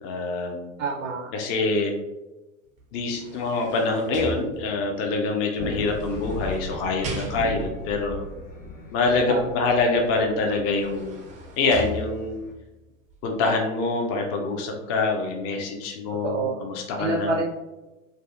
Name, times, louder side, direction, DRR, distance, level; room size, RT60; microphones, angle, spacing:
voice 1, 0.0-0.7 1.3-1.9 2.9-8.2 8.9-11.2 11.6-12.4 13.2-17.3, left 3 dB, 35° left, 2 dB, 0.5 m, -25 dB
voice 2, 0.8-1.3 9.3-9.7 16.2-16.6 17.0-17.5, right 3 dB, 80° right, -1 dB, 0.6 m, -27 dB
sound 1, 2.8-5.0 5.8-7.8 10.1-10.2 10.6-12.6 13.1-13.2, equal, 20° right, 0.4 m, -39 dB
sound 2, 5.6-12.5, left 2 dB, 70° left, 0.8 m, -38 dB
2.6 x 2.4 x 2.4 m, 1.0 s
figure-of-eight pair, 85°, 39 cm